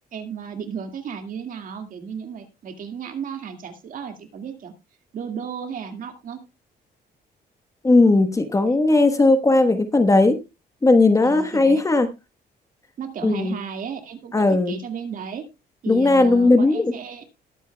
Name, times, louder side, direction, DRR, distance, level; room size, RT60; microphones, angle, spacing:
voice 1, 0.1-4.7 5.1-6.4 8.7-8.8 11.2-11.8 13.0-15.4 15.8-17.3, right 6 dB, 55° right, 6 dB, 2.1 m, -34 dB
voice 2, 7.8-10.4 10.8-12.1 13.2-13.5 14.3-14.7 15.9-16.9, left 2 dB, 20° left, 9 dB, 1.3 m, -17 dB
20.0 x 8.3 x 2.3 m, 0.24 s
cardioid pair, 130°, 17 cm